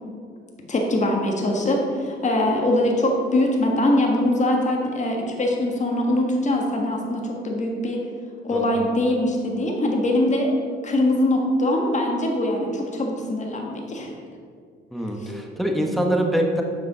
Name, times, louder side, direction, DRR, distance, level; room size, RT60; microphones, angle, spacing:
voice 1, 0.7-8.0 8.4-10.5 10.8-14.2 15.2-15.3, left 1 dB, 35° left, 0 dB, 1.6 m, -22 dB
voice 2, 14.9-16.6, right 1 dB, ahead, 1 dB, 1.2 m, -24 dB
7.0 x 6.1 x 5.5 m, 2.2 s
cardioid pair, 90°, 20 cm